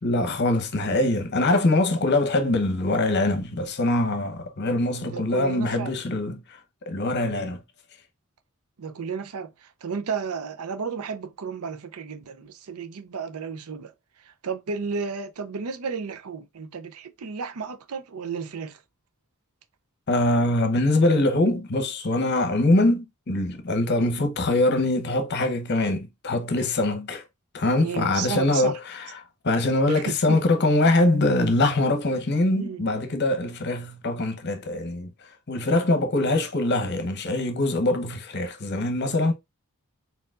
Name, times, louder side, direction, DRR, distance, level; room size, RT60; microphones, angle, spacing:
voice 1, 0.0-6.4 6.9-7.6 20.1-27.2 27.5-29.1 29.4-35.1 35.5-39.3, left 2 dB, 50° left, 0.9 m, -23 dB
voice 2, 5.1-5.9 8.8-13.9 14.3-18.8 27.8-28.8 29.9-30.4 32.5-32.9 36.1-36.3, right 5 dB, 85° right, 0.5 m, -33 dB
4.5 x 4.1 x 2.4 m
head